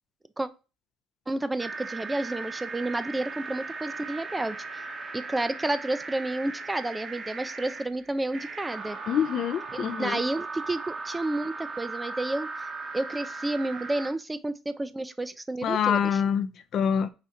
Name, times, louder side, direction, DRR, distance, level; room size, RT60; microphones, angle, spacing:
voice 1, 1.3-4.6 5.1-9.0 9.7-12.5 12.9-16.2, right 2 dB, 15° right, 0.4 m, -30 dB
sound 1, 1.6-14.1, right 3 dB, 40° right, 0.8 m, -38 dB
voice 2, 9.1-10.2 15.6-17.1, left 8 dB, 55° left, 0.4 m, -26 dB
4.8 x 3.3 x 2.7 m
cardioid pair, 105°, 0 cm